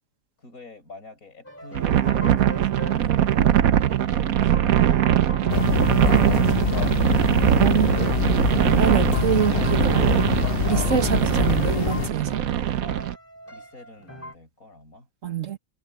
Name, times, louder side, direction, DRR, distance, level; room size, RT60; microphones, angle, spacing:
voice 1, 0.4-5.2 12.8-13.0 13.5-15.1, left 2 dB, 80° left, 7.6 m, -46 dB
sound 1, 1.4-14.3, equal, 10° left, 2.8 m, -41 dB
sound 2, 1.7-13.1, right 10 dB, 80° right, 1.3 m, -21 dB
sound 3, 5.5-12.1, left 8 dB, 50° left, 0.8 m, -25 dB
voice 2, 6.2-8.2 8.8-10.1 10.7-12.4 15.2-15.6, right 8 dB, 65° right, 1.7 m, -26 dB
omnidirectional pair, 1.5 m